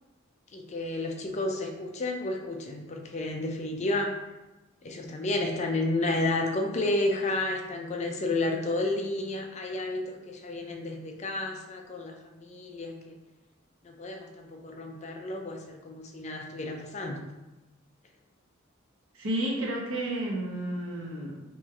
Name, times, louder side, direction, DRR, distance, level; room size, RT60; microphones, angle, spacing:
voice 1, 0.5-4.1 4.8-13.2 13.8-17.2, left 2 dB, 35° left, 3 dB, 0.4 m, -31 dB
voice 2, 19.1-21.4, right 1 dB, 80° right, -3 dB, 1.0 m, -31 dB
3.0 x 3.0 x 3.5 m, 1.0 s
head